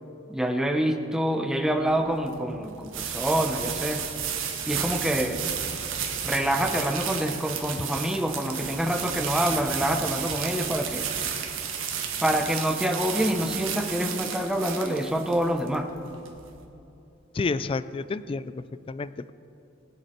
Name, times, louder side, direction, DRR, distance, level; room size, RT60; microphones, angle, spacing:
voice 1, 0.3-4.0 4.7-5.5 6.2-11.1 12.2-15.9, equal, 5° right, 4 dB, 0.8 m, -26 dB
sound 1, 1.7-16.6, right 7 dB, 85° right, 1.5 m, -32 dB
voice 2, 17.4-18.5 18.9-19.3, left 4 dB, 25° left, 15 dB, 0.3 m, -29 dB
22.5 x 8.0 x 4.5 m, 2.8 s
head